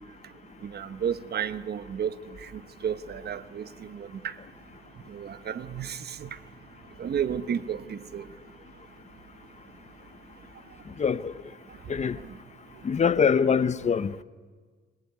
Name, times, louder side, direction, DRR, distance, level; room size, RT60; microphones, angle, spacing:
voice 1, 0.6-2.2 2.8-4.3 5.1-6.3 7.0-8.2, right 8 dB, 55° right, 1.3 m, -32 dB
voice 2, 10.9-11.3 11.9-12.2 12.8-14.2, left 6 dB, 35° left, 0.9 m, -24 dB
25.0 x 20.5 x 9.6 m
cardioid pair, 90°, 20 cm